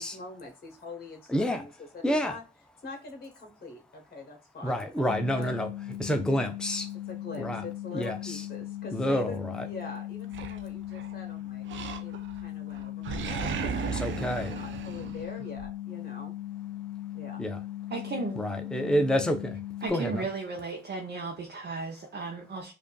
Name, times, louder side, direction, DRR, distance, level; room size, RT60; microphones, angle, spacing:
voice 1, 0.0-2.4 2.8-5.1 5.3-5.5 7.1-11.7 12.0-16.3 17.1-17.4, left 3 dB, 50° left, 1.2 m, -44 dB
voice 2, 1.3-1.6 2.0-2.4 4.6-5.7 6.0-6.9 7.4-7.6 7.9-8.4 8.9-9.7 13.9-14.5 17.4-17.6 18.4-19.5 19.9-20.2, equal, 5° left, 0.6 m, -28 dB
sound 1, 5.1-19.9, left 14 dB, 75° left, 0.9 m, -38 dB
Animal, 10.3-11.1 11.7-12.4 12.7-15.7, right 6 dB, 90° right, 0.5 m, -35 dB
voice 3, 17.9-18.4 19.8-22.7, right 4 dB, 65° right, 0.8 m, -35 dB
4.9 x 2.6 x 2.3 m
cardioid pair, 70°, 19 cm